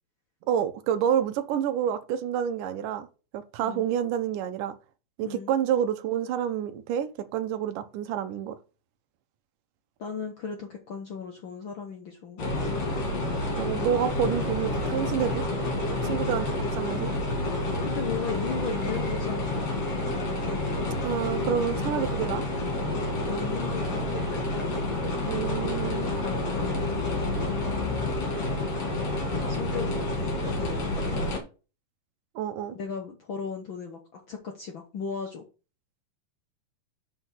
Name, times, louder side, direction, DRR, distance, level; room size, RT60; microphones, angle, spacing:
voice 1, 0.5-3.1 3.3-4.8 5.2-8.6 13.6-15.4 16.0-17.1 21.0-22.4 25.2-26.1 32.4-32.8, right 9 dB, 80° right, 2.4 m, -28 dB
voice 2, 3.6-4.0 5.2-5.6 10.0-12.5 17.8-19.5 20.0-20.9 21.4-21.7 23.0-24.4 25.9-28.3 29.2-31.4 32.7-35.4, left 5 dB, 75° left, 1.1 m, -37 dB
sound 1, 12.4-31.4, left 2 dB, 50° left, 3.3 m, -29 dB
5.7 x 5.6 x 6.1 m
omnidirectional pair, 3.7 m